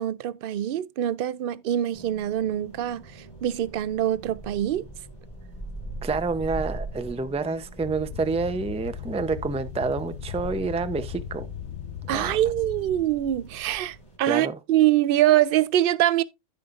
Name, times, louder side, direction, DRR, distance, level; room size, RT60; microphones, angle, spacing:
voice 1, 0.0-3.0 3.4-4.9 12.1-16.2, right 13 dB, 60° right, 0.7 m, -24 dB
sound 1, 1.9-14.2, right 1 dB, 25° left, 3.2 m, -42 dB
voice 2, 6.0-11.5 12.1-12.4 14.3-14.6, right 4 dB, 10° right, 0.4 m, -28 dB
sound 2, 7.8-13.1, left 10 dB, 80° left, 1.1 m, -38 dB
14.5 x 5.3 x 2.5 m
omnidirectional pair, 1.2 m